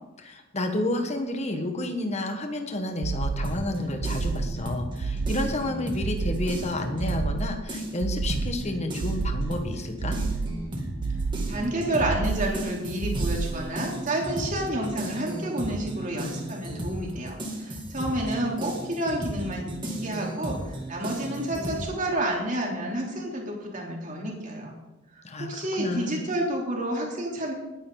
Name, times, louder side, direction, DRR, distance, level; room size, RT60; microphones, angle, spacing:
voice 1, 0.2-10.2 25.2-26.2, left 1 dB, 35° left, 5 dB, 1.5 m, -30 dB
sound 1, 3.0-3.7 4.0-4.7 5.0-5.6 6.0-6.7 7.0-7.6 8.0-8.7 9.0-9.6 10.0-10.7 11.0-11.7 12.0-12.7 13.0-13.7, right 4 dB, 85° right, 0.5 m, -30 dB
sound 2, 3.4-7.4 7.7-21.9, right 1 dB, 25° right, 2.5 m, -35 dB
voice 2, 11.5-24.8 25.1-27.5, right 1 dB, 40° right, -1 dB, 3.3 m, -30 dB
20.0 x 9.4 x 4.0 m, 1.0 s
head